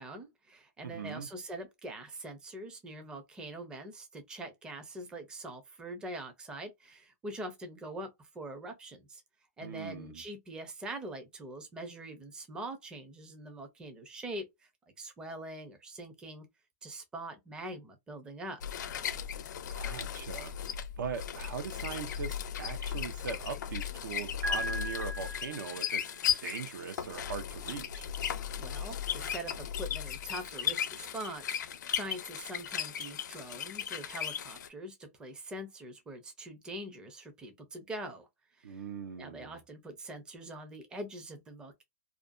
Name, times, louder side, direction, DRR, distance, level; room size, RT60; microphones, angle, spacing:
voice 1, 0.0-9.2 9.6-14.7 15.0-16.5 16.8-18.6 28.6-38.3 38.5-38.8 39.2-41.8, right 1 dB, 10° right, 0.4 m, -43 dB
voice 2, 0.8-1.3 9.6-10.2 19.7-20.7 21.0-26.1 26.4-28.1 38.6-39.6, right 6 dB, 85° right, 0.7 m, -40 dB
sound 1, 18.6-34.7, left 9 dB, 75° left, 0.5 m, -36 dB
Piano, 24.4-26.3, equal, 60° right, 0.9 m, -38 dB
2.5 x 2.2 x 2.4 m
hypercardioid pair, 160°, 10 cm